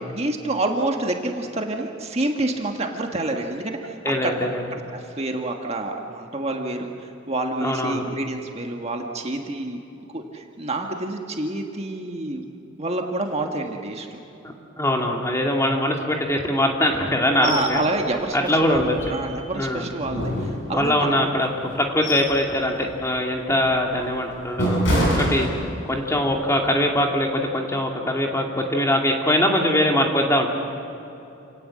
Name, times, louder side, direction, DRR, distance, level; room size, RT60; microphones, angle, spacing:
voice 1, 0.1-4.0 4.2-4.3 4.7-9.8 10.1-12.4 12.8-14.2 17.4-18.8 19.1-21.1, right 2 dB, 30° right, 2 dB, 1.6 m, -28 dB
voice 2, 4.0-4.6 7.6-8.0 14.4-17.8 18.3-19.1 19.5-19.8 20.7-21.5 21.7-25.5 25.9-30.5, left 1 dB, 15° left, 1 dB, 2.3 m, -22 dB
sound 1, 17.4-17.7 18.1-18.2 18.7-19.5 20.0-21.0 21.6-22.4 22.8-23.1 23.6-26.1 26.4-26.6, equal, 65° left, 7.8 m, -26 dB
28.5 x 18.5 x 7.7 m, 2.9 s
head